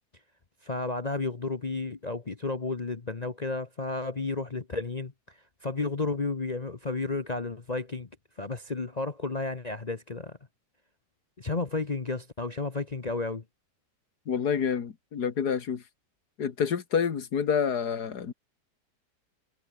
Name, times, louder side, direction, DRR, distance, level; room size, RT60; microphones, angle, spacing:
voice 1, 0.6-5.1 5.6-8.1 8.4-10.4 11.4-13.4, left 3 dB, 30° left, 1.0 m, -32 dB
voice 2, 14.3-15.8 16.4-18.3, left 7 dB, 70° left, 2.2 m, -28 dB
omnidirectional pair, 1.8 m